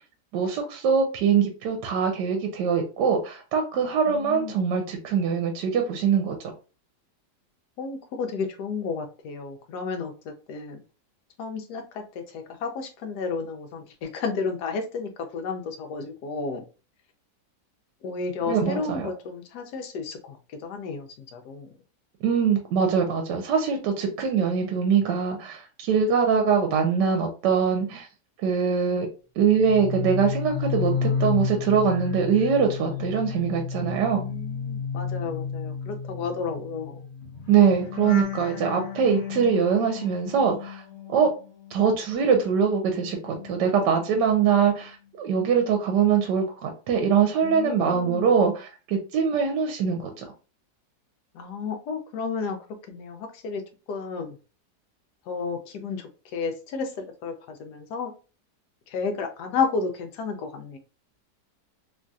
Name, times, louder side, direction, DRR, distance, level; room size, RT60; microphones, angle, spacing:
voice 1, 0.3-6.4 18.5-19.1 22.2-28.1 28.4-29.1 29.4-34.2 37.5-40.8 41.1-41.3 41.7-50.2, right 6 dB, 80° right, 4 dB, 1.2 m, -23 dB
voice 2, 4.1-4.6 7.8-10.8 11.4-16.6 18.0-21.7 34.2-37.1 47.4-48.3 51.3-52.6 52.9-53.6 53.9-54.4 55.3-58.1 58.9-60.8, left 5 dB, 70° left, 5 dB, 1.1 m, -32 dB
sound 1, 29.5-41.8 42.1-44.2 44.5-44.9, left 5 dB, 55° left, 0.7 m, -32 dB
3.1 x 2.6 x 2.3 m, 0.33 s
omnidirectional pair, 1.9 m